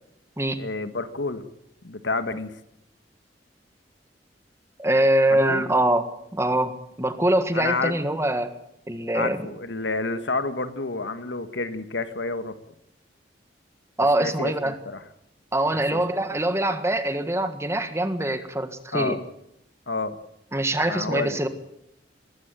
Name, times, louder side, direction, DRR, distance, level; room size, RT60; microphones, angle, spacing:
voice 1, 0.6-1.4 1.8-2.6 5.3-5.6 7.5-7.9 9.1-12.5 14.2-14.5 14.8-15.0 15.7-16.0 18.9-19.2 19.9-20.2 20.8-21.4, left 3 dB, 80° left, 10 dB, 1.7 m, -29 dB
voice 2, 4.8-6.1 6.3-8.5 8.9-9.4 14.0-14.8 15.5-19.2 20.5-21.5, right 1 dB, 15° right, 10 dB, 1.6 m, -23 dB
20.5 x 15.0 x 9.0 m, 0.79 s
head